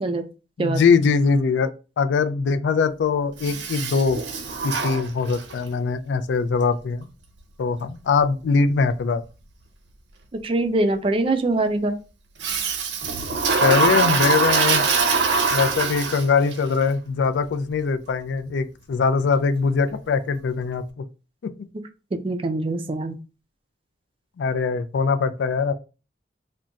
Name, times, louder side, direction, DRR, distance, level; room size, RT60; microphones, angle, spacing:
voice 1, 0.6-1.7 2.0-4.2 4.6-7.1 7.6-9.2 13.6-14.8 15.5-21.0 21.4-21.5 24.4-25.7, left 5 dB, 85° left, 0.3 m, -22 dB
Toilet flush, 3.4-5.6 12.4-16.5, right 4 dB, 80° right, 0.6 m, -23 dB
voice 2, 10.4-11.9 22.2-23.2, right 2 dB, 30° right, 0.4 m, -23 dB
2.4 x 2.2 x 3.9 m
head